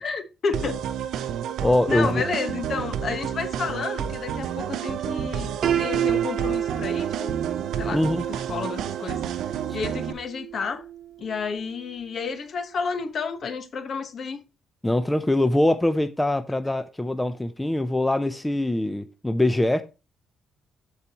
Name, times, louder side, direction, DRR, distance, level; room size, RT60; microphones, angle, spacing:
voice 1, 0.0-0.8 1.9-7.4 7.8-8.0 8.3-10.8 11.2-14.4, left 5 dB, 55° left, 1.2 m, -31 dB
sound 1, 0.5-10.1, right 9 dB, 80° right, 0.7 m, -30 dB
voice 2, 1.6-2.2 7.9-8.2 14.8-19.8, left 1 dB, 10° left, 0.6 m, -23 dB
Piano, 5.6-11.5, right 9 dB, 65° right, 1.1 m, -30 dB
14.0 x 4.8 x 2.9 m
cardioid pair, 90°, 0 cm